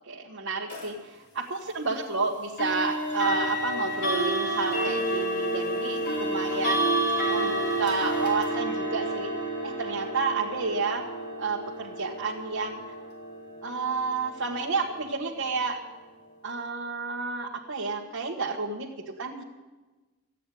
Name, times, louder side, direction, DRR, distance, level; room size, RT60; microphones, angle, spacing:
voice 1, 0.1-6.9 7.3-9.3 9.6-11.1 11.4-12.9 13.6-15.8 16.4-19.4, right 4 dB, 60° right, -1 dB, 1.4 m, -30 dB
sound 1, 0.7-0.9 2.6-15.4, right 1 dB, 55° left, 4.9 m, -30 dB
14.5 x 9.2 x 9.9 m, 1.2 s
head